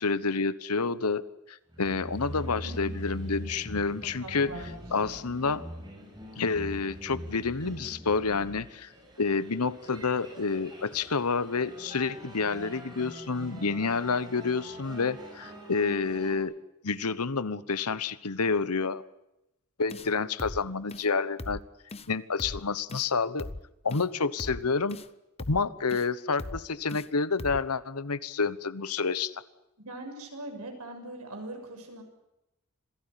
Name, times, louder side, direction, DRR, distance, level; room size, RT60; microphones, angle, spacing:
voice 1, 0.0-4.5 4.9-5.6 6.4-8.9 9.2-16.5 16.8-19.0 19.8-21.6 22.1-23.5 23.8-25.0 25.5-29.4, left 4 dB, 85° left, 16 dB, 1.1 m, -29 dB
sound 1, 1.7-16.3, equal, 20° right, 7.0 m, -43 dB
voice 2, 2.5-2.9 4.2-4.8 29.8-32.0, right 2 dB, 85° right, 4 dB, 6.9 m, -41 dB
sound 2, 19.9-20.1 20.4-20.6 20.9-21.1 21.4-21.6 21.9-22.1 22.4-22.6 22.9-23.1 23.4-23.6 23.9-24.1 24.4-24.6 24.9-25.1 25.4-25.6 25.9-26.1 26.4-26.6 26.9-27.1 27.4-27.6, left 2 dB, 25° left, 0.9 m, -39 dB
26.5 x 17.5 x 10.0 m, 0.90 s
head